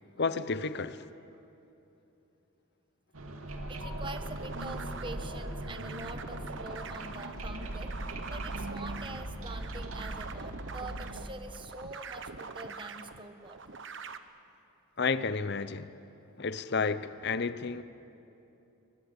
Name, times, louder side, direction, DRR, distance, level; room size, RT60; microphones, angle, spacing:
voice 1, 0.2-1.1 15.0-16.0 16.4-17.8, left 4 dB, 50° left, 0.8 m, -31 dB
sound 1, 3.1-11.2, right 1 dB, 80° right, 2.5 m, -39 dB
voice 2, 3.7-13.6, right 2 dB, 25° right, 1.4 m, -45 dB
sound 2, 4.0-14.2, right 4 dB, 60° right, 1.1 m, -44 dB
28.5 x 23.5 x 8.2 m
head